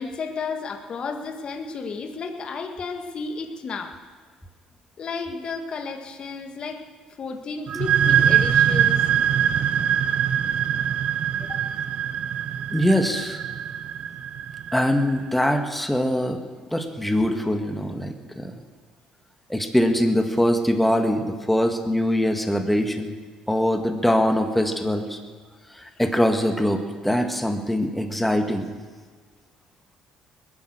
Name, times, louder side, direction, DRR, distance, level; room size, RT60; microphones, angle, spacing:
voice 1, 0.0-4.0 5.0-6.8 7.2-9.1 11.4-11.7, left 4 dB, 45° left, 5 dB, 1.8 m, -33 dB
sound 1, 7.7-15.1, right 9 dB, 55° right, 0.6 m, -23 dB
voice 2, 12.7-13.4 14.7-16.4 16.7-18.5 19.5-23.1 23.5-25.2 25.7-28.7, equal, 5° left, 5 dB, 1.8 m, -23 dB
20.5 x 9.8 x 6.6 m, 1.5 s
supercardioid pair, 85°, 2 cm